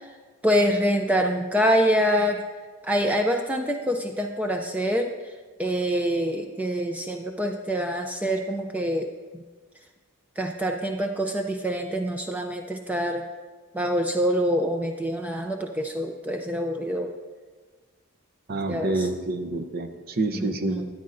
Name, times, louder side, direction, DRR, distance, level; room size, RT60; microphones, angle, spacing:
voice 1, 0.4-2.4 2.8-5.1 5.6-9.4 10.4-13.2 13.7-17.1 18.7-19.1 20.3-20.9, equal, 5° right, 3 dB, 0.4 m, -25 dB
voice 2, 18.5-20.8, right 2 dB, 45° right, 7 dB, 0.6 m, -28 dB
13.5 x 9.4 x 2.5 m, 1.4 s
head